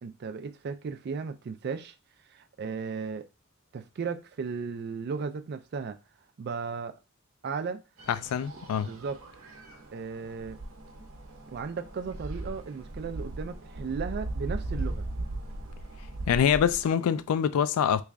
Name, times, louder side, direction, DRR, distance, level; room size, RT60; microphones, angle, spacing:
voice 1, 0.0-1.9 2.3-3.3 3.7-6.0 6.4-7.0 7.4-7.8 8.8-9.2 9.9-10.6 11.5-15.0, right 5 dB, 50° right, 0.3 m, -35 dB
sound 1, 8.0-16.9, right 2 dB, 75° right, 0.7 m, -38 dB
voice 2, 8.1-8.9 16.3-18.0, left 8 dB, 90° left, 0.3 m, -25 dB
3.2 x 2.4 x 3.4 m
head